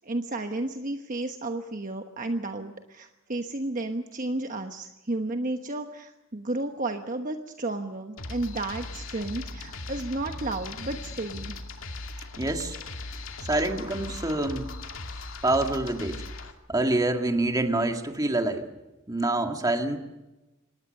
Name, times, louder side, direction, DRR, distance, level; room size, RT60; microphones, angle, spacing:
voice 1, 0.0-11.6 13.1-13.2, right 2 dB, 40° right, 5 dB, 1.2 m, -32 dB
sound 1, 8.2-16.5, left 2 dB, 75° left, 2.5 m, -38 dB
voice 2, 12.4-12.8 13.5-14.7 15.4-16.2 16.7-18.7 19.1-20.0, right 2 dB, 20° right, 4 dB, 2.1 m, -26 dB
26.0 x 19.5 x 6.7 m, 1.0 s
head